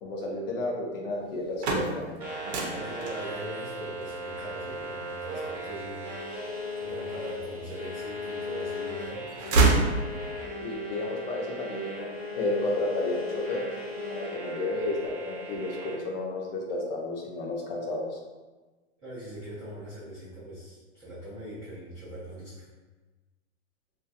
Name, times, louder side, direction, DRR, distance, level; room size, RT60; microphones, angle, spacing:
voice 1, 0.0-2.2 10.6-13.6 14.1-18.2, left 2 dB, 55° left, -2 dB, 0.6 m, -32 dB
sound 1, 1.3-7.3 7.8-8.7 9.0-10.6, right 3 dB, 70° right, 0.6 m, -28 dB
sound 2, 2.2-15.9, left 1 dB, 35° right, 0.8 m, -37 dB
voice 2, 2.7-6.1 6.7-9.2 19.0-22.6, right 1 dB, 10° right, -17 dB, 0.4 m, -41 dB
2.4 x 2.3 x 2.6 m, 1.3 s
supercardioid pair, 170°, 35 cm